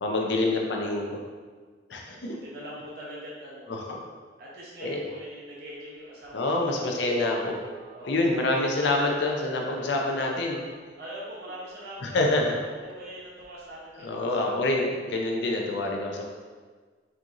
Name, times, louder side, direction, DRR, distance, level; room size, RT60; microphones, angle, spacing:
voice 1, 0.0-1.2 1.9-2.3 3.7-3.8 4.8-5.0 6.3-7.6 8.0-10.6 12.0-12.5 14.0-16.2, left 2 dB, 65° left, 0 dB, 0.6 m, -26 dB
voice 2, 2.0-3.7 4.4-7.1 7.9-8.1 11.0-12.3 12.6-14.7, equal, 55° right, -5 dB, 0.8 m, -42 dB
Telephone, 6.2-6.3 7.0-11.8 12.4-12.5 12.8-13.0 13.4-13.7 14.0-14.1, equal, 25° right, 0.3 m, -48 dB
4.4 x 3.6 x 2.5 m, 1.5 s
head